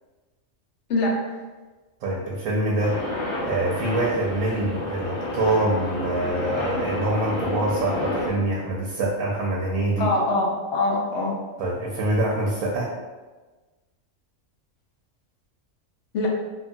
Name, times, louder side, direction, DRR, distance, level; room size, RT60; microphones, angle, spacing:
voice 1, 0.9-1.4 10.0-11.3 16.1-16.3, left 2 dB, 65° left, -2 dB, 0.8 m, -23 dB
voice 2, 2.0-3.0 3.4-10.1 11.6-12.9, right 2 dB, 85° right, -4 dB, 1.0 m, -25 dB
sound 1, 2.8-8.3, left 1 dB, 25° left, 0.8 m, -30 dB
2.8 x 2.7 x 2.2 m, 1.2 s
omnidirectional pair, 1.4 m